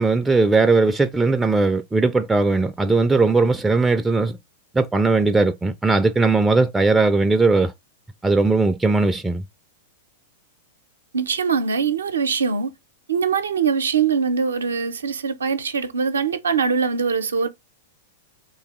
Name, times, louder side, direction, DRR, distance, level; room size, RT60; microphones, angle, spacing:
voice 1, 0.0-4.4 4.7-7.7 8.2-9.4, right 3 dB, 10° right, 0.3 m, -18 dB
voice 2, 11.1-12.7 13.1-17.5, right 6 dB, 90° right, 0.5 m, -22 dB
3.3 x 3.0 x 2.9 m
hypercardioid pair, 110°, 0 cm